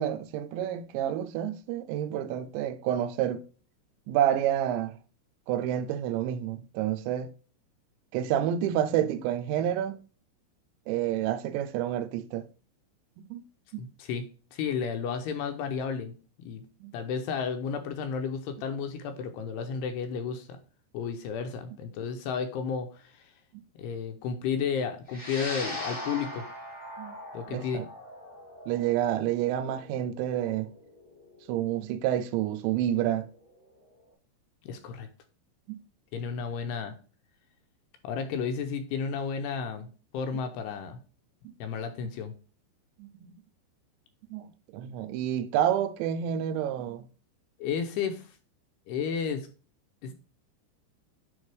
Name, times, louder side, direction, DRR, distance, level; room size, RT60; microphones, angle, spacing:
voice 1, 0.0-3.4 4.1-5.0 5.5-7.3 8.1-10.0 10.9-12.5 13.3-13.4 13.7-13.8 16.8-16.9 27.0-27.1 27.5-27.9 28.7-30.7 31.5-33.3 35.7-35.8 43.0-43.3 44.3-47.1 50.0-50.1, right 11 dB, 90° right, 2.9 m, -29 dB
voice 2, 13.8-14.3 14.5-16.6 16.9-20.6 20.9-23.3 23.8-26.5 27.3-27.8 34.6-35.1 36.1-37.0 38.0-41.0 41.6-42.3 47.6-48.4 48.9-49.5 50.0-50.1, left 6 dB, 80° left, 2.6 m, -32 dB
sound 1, 25.1-33.6, left 1 dB, 30° left, 0.7 m, -41 dB
10.5 x 3.7 x 3.3 m
omnidirectional pair, 5.2 m